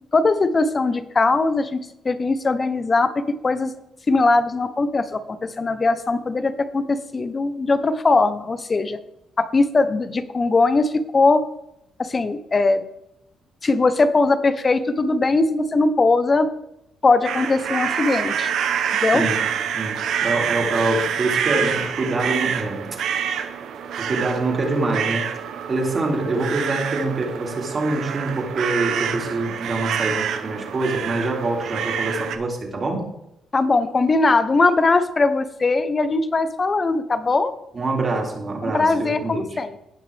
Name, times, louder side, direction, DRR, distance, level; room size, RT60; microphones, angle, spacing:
voice 1, 0.1-1.8 2.0-3.1 3.4-3.7 4.1-9.0 9.4-11.4 12.0-12.8 13.6-16.5 17.0-18.5 19.0-19.2 33.5-37.5 38.6-39.8, left 3 dB, 30° left, 12 dB, 1.0 m, -20 dB
sound 1, 17.2-32.4, right 8 dB, 75° right, 1.0 m, -26 dB
voice 2, 19.1-19.5 19.7-23.0 24.0-25.3 25.7-33.1 37.7-39.6, right 2 dB, 40° right, 0 dB, 3.2 m, -25 dB
17.5 x 5.9 x 3.5 m, 0.84 s
cardioid pair, 90°, 0 cm